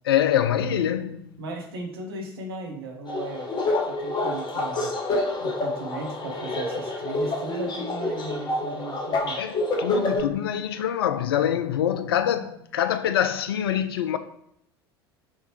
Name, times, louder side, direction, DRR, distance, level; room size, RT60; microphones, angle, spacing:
voice 1, 0.1-1.3 9.4-14.2, left 10 dB, 70° left, 0.4 m, -25 dB
voice 2, 1.4-3.5 3.9-4.9 5.4-9.4, right 3 dB, 70° right, 1.0 m, -36 dB
sound 1, 3.1-10.2, left 2 dB, 35° left, 1.1 m, -28 dB
5.6 x 3.0 x 3.1 m
figure-of-eight pair, 70°, 13 cm